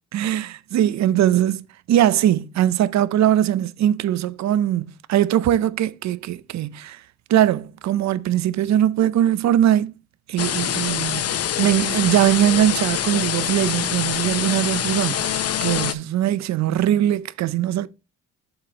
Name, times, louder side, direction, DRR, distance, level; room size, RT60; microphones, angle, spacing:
voice 1, 0.1-7.0 7.3-9.9 10.3-17.9, right 11 dB, 65° right, 0.6 m, -21 dB
sound 1, 10.4-15.9, left 10 dB, 55° left, 0.8 m, -25 dB
7.3 x 5.0 x 4.0 m
cardioid pair, 90°, 30 cm